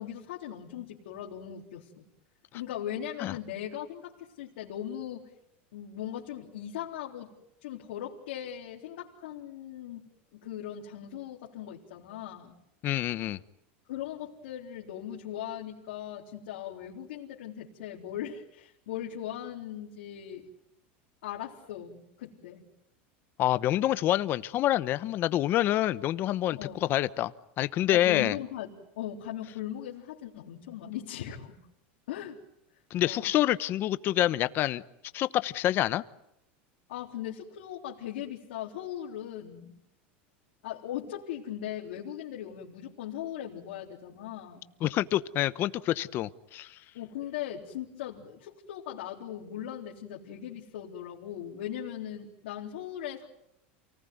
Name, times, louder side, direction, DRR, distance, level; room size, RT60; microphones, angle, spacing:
voice 1, 0.0-2.0 2.5-5.2 5.7-7.3 7.6-12.6 13.9-20.5 21.2-22.6 26.5-26.8 27.9-31.5 32.1-32.4 33.0-33.4 36.9-39.7 40.6-44.7 46.9-53.3, left 10 dB, 85° left, 3.8 m, -39 dB
voice 2, 12.8-13.4 23.4-28.4 32.9-34.8 35.1-36.0 44.8-46.8, left 13 dB, 35° left, 0.9 m, -27 dB
28.5 x 19.0 x 9.5 m
supercardioid pair, 150°, 6 cm